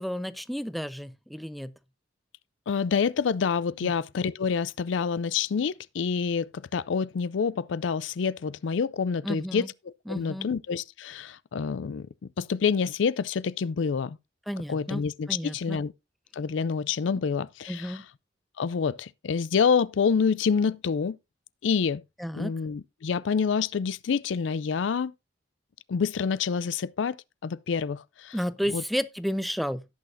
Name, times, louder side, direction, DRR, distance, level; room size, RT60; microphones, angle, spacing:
voice 1, 0.0-1.7 3.8-3.9 9.2-9.7 10.1-10.5 14.5-15.0 15.3-15.8 17.7-18.0 22.2-22.5 28.3-29.8, equal, ahead, 0.4 m, -32 dB
voice 2, 2.7-9.7 10.1-12.1 12.4-14.2 14.7-15.9 16.4-18.0 18.6-21.2 21.6-22.0 22.3-25.1 25.9-28.4 28.7-28.8, left 6 dB, 75° left, 0.4 m, -27 dB
17.5 x 6.2 x 2.6 m
head